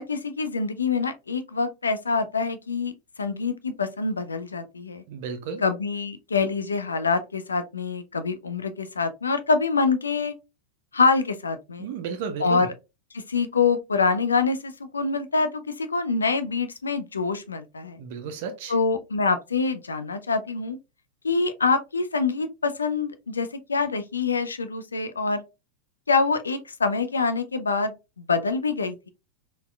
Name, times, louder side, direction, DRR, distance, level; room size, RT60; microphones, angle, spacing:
voice 1, 0.0-2.9 3.2-5.0 5.6-10.3 10.9-11.9 12.4-12.7 13.1-18.0 18.7-20.8 21.2-25.4 26.1-29.1, left 4 dB, 75° left, 0.4 m, -25 dB
voice 2, 5.1-5.6 11.8-12.7 18.0-18.8, right 6 dB, 50° right, 0.4 m, -33 dB
4.0 x 2.1 x 2.3 m
figure-of-eight pair, 90°, 0 cm